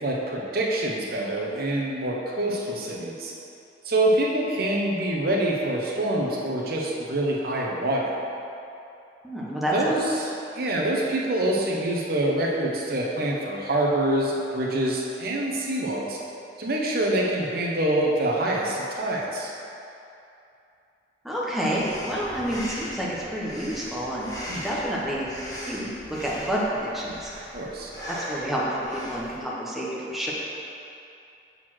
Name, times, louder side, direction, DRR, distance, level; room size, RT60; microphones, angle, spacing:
voice 1, 0.0-3.3 3.8-8.1 9.7-16.2 16.6-19.5 24.5-24.7 27.5-27.9, right 1 dB, 55° right, -2 dB, 0.9 m, -26 dB
voice 2, 9.2-9.9 21.2-24.3 24.6-27.3 28.1-30.3, equal, ahead, -6 dB, 0.9 m, -29 dB
Breathing, 21.8-29.4, equal, 20° left, 1.2 m, -39 dB
6.4 x 4.1 x 6.1 m, 2.7 s
head